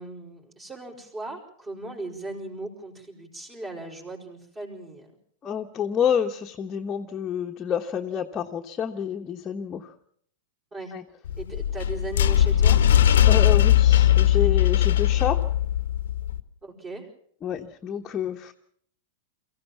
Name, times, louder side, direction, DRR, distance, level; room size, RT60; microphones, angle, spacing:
voice 1, 0.0-5.1 10.7-10.9 11.4-12.8 16.6-17.1, right 2 dB, 25° right, 0 dB, 5.2 m, -38 dB
voice 2, 5.4-9.9 10.9-11.0 13.3-15.4 17.4-18.5, left 8 dB, 25° left, 2 dB, 1.2 m, -28 dB
sound 1, 11.3-16.4, left 11 dB, 65° left, 1.0 m, -19 dB
23.5 x 15.5 x 7.3 m, 0.63 s
figure-of-eight pair, 100°, 0 cm